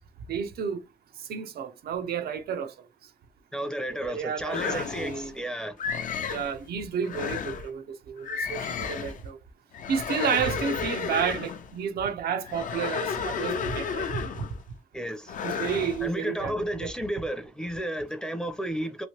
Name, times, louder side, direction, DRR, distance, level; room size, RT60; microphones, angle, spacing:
voice 1, 0.3-0.8 1.3-2.7 3.9-5.3 6.3-9.4 9.9-14.2 15.4-16.5 16.8-16.9, right 7 dB, 70° right, 0.6 m, -31 dB
voice 2, 3.5-5.8 14.9-15.4 16.0-19.1, right 1 dB, 5° left, 0.6 m, -32 dB
sound 1, 4.5-5.3 5.8-6.5 7.0-7.7 8.2-9.2 9.7-11.7 12.4-14.6 15.3-16.1, left 6 dB, 55° left, 0.5 m, -32 dB
3.1 x 2.5 x 2.8 m
cardioid pair, 100°, 16 cm